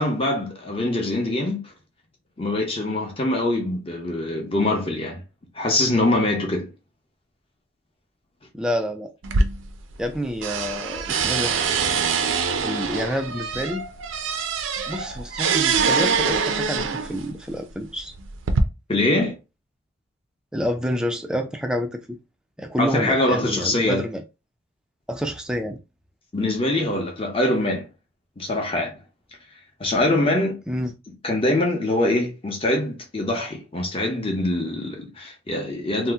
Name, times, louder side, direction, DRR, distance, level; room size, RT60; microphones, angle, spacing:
voice 1, 0.0-1.6 2.4-5.2 5.6-6.7 18.9-19.4 22.8-24.0 26.3-27.9 28.4-29.0 29.8-30.6 31.2-36.1, left 1 dB, 30° left, 0.7 m, -23 dB
voice 2, 8.5-9.1 10.0-11.5 12.6-13.8 14.9-18.1 20.5-22.2 22.6-24.2 25.1-25.8 30.7-30.9, equal, 5° right, 0.4 m, -28 dB
sound 1, 9.2-10.1 10.4-17.2 18.0-18.6, right 5 dB, 75° right, 0.4 m, -24 dB
2.8 x 2.1 x 3.4 m
head